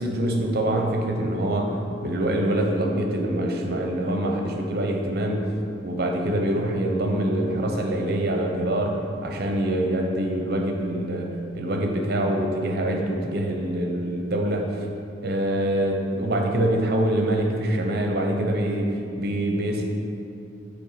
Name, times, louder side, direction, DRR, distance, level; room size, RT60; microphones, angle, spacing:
voice 1, 0.0-1.7 2.0-5.4 5.8-9.0 9.2-14.7 15.2-19.8, right 1 dB, 55° right, 2 dB, 0.7 m, -25 dB
6.8 x 3.3 x 5.7 m, 2.6 s
head